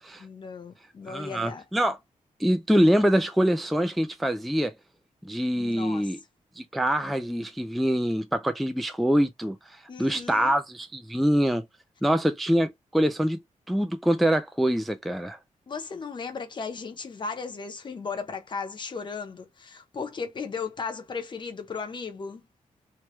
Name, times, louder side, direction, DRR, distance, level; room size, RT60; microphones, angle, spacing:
voice 1, 0.2-1.6 5.6-6.1 9.9-10.5 15.7-22.4, left 5 dB, 35° left, 0.7 m, -36 dB
voice 2, 1.1-2.0 2.4-4.7 5.2-6.2 6.6-9.6 10.0-11.6 12.0-13.4 13.7-15.4, equal, ahead, 0.3 m, -24 dB
3.0 x 2.2 x 3.1 m
wide cardioid pair, 140°, 13 cm